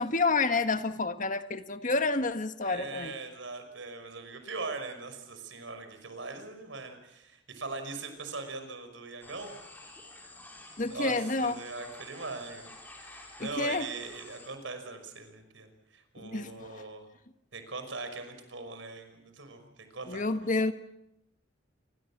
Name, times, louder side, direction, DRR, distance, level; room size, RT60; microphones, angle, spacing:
voice 1, 0.0-3.1 10.8-11.6 13.4-13.9 16.2-16.8 20.1-20.7, left 3 dB, 40° left, 9 dB, 1.6 m, -29 dB
voice 2, 2.6-9.6 10.8-12.7 13.4-17.1 17.5-20.2, right 3 dB, 75° right, 7 dB, 5.7 m, -41 dB
sound 1, 9.2-14.5, left 2 dB, 10° left, 5.8 m, -50 dB
29.0 x 24.5 x 7.5 m, 0.86 s
head